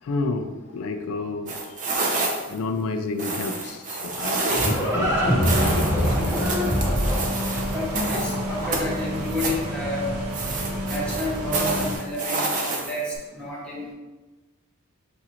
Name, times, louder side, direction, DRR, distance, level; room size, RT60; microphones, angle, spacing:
voice 1, 0.0-1.8 2.2-6.6, left 3 dB, 70° left, 6 dB, 0.3 m, -30 dB
sound 1, 1.5-2.6 3.2-4.9 5.4-8.4 8.7-9.6 10.3-13.2, right 3 dB, 35° right, 0.5 m, -28 dB
Livestock farm animals working animals, 3.9-9.0, equal, 10° right, 1.0 m, -24 dB
sound 2, 5.0-12.0, equal, 90° right, 0.6 m, -30 dB
voice 2, 7.7-10.1 10.9-13.9, left 1 dB, 5° left, -6 dB, 0.6 m, -30 dB
6.0 x 2.4 x 2.8 m, 1.2 s
head